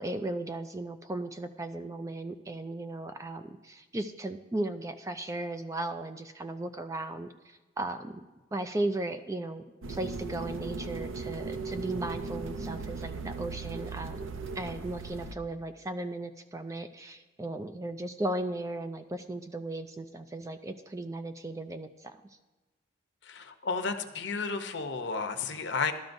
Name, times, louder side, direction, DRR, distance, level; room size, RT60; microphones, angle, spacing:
voice 1, 0.0-8.2 8.5-9.6 9.9-14.2 14.6-22.2, right 2 dB, 15° right, 8 dB, 0.3 m, -36 dB
sound 1, 9.8-15.4, right 4 dB, 75° right, 0.6 m, -38 dB
voice 2, 23.2-25.9, left 4 dB, 55° left, 7 dB, 0.7 m, -32 dB
13.0 x 12.5 x 2.6 m, 1.2 s
head